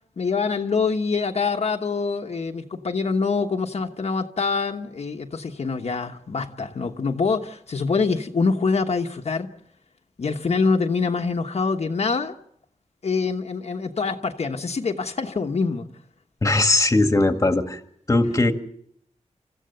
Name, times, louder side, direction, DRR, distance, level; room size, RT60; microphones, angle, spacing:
voice 1, 0.2-9.5 10.2-12.3 13.0-15.9, left 4 dB, 60° left, 3 dB, 1.2 m, -25 dB
voice 2, 16.4-17.8 18.1-18.5, left 2 dB, 25° left, 7 dB, 1.8 m, -19 dB
28.5 x 15.0 x 6.8 m, 0.69 s
wide cardioid pair, 85°, 12 cm